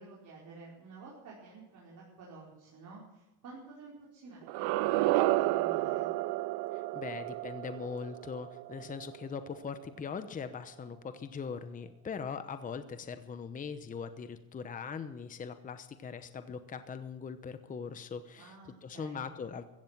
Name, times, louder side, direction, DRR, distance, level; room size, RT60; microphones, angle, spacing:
voice 1, 0.0-6.1 18.4-19.3, right 3 dB, 40° right, -5 dB, 5.0 m, -51 dB
sound 1, 4.4-9.4, right 18 dB, 65° right, 0.8 m, -31 dB
voice 2, 6.7-19.6, left 6 dB, 20° left, 10 dB, 0.9 m, -41 dB
15.5 x 15.0 x 6.0 m, 1.0 s
cardioid pair, 135°, 44 cm